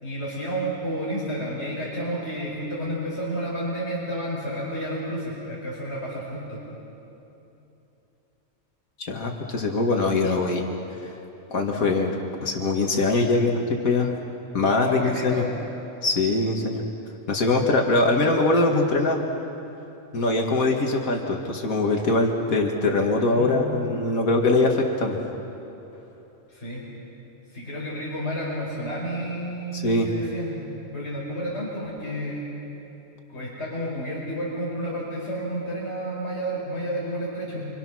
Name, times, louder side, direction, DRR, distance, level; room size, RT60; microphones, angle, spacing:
voice 1, 0.0-6.6 14.8-15.5 23.3-23.6 26.5-26.8 27.5-30.5 30.9-32.5 33.3-37.7, equal, 50° left, -5 dB, 5.0 m, -31 dB
voice 2, 9.0-10.6 11.0-11.1 11.5-12.1 12.4-14.1 14.5-15.4 16.0-16.8 17.3-19.2 20.1-25.2 29.7-30.1, left 2 dB, 85° left, 1 dB, 2.2 m, -22 dB
27.5 x 26.5 x 6.3 m, 3.0 s
omnidirectional pair, 1.4 m